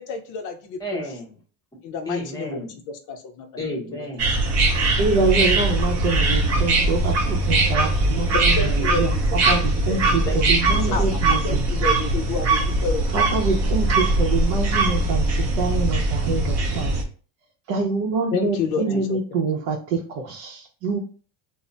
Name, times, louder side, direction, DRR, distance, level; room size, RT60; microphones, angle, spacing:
voice 1, 0.0-1.0 1.8-2.6 3.1-3.5 8.3-9.0 9.3-10.4 10.9-13.1 16.3-16.4 18.3-19.4, left 4 dB, 45° left, 0.4 m, -30 dB
voice 2, 0.8-1.4 2.0-2.8 3.6-4.3 10.3-11.0 18.7-19.0, left 1 dB, 10° left, 0.7 m, -32 dB
sound 1, 4.2-17.0, right 2 dB, 40° right, 0.5 m, -21 dB
voice 3, 5.0-11.7 13.1-15.3 15.5-16.9 17.7-21.0, right 4 dB, 90° right, 0.7 m, -25 dB
2.1 x 2.0 x 3.8 m
cardioid pair, 155°, 43 cm